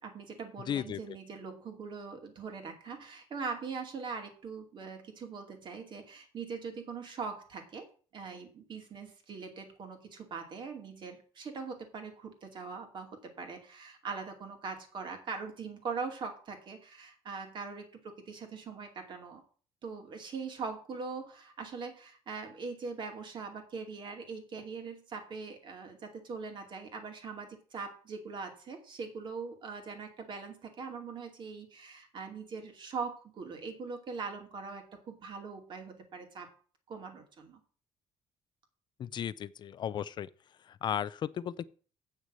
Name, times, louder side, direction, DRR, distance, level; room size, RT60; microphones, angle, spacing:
voice 1, 0.0-7.9 8.1-19.4 19.8-36.5 36.9-37.6, right 5 dB, 45° right, 2.5 m, -41 dB
voice 2, 0.7-1.0 39.0-40.3 40.8-41.6, left 9 dB, 40° left, 0.5 m, -34 dB
8.2 x 6.3 x 7.6 m
cardioid pair, 155°, 12 cm